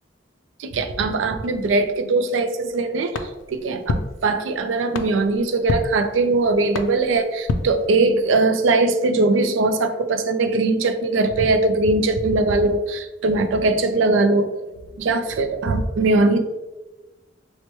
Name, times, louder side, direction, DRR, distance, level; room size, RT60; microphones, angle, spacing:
voice 1, 0.6-14.5 15.0-16.4, right 3 dB, 85° right, 8 dB, 0.4 m, -20 dB
sound 1, 3.1-8.5, left 3 dB, 80° left, 0.3 m, -30 dB
4.4 x 2.1 x 3.0 m, 1.1 s
head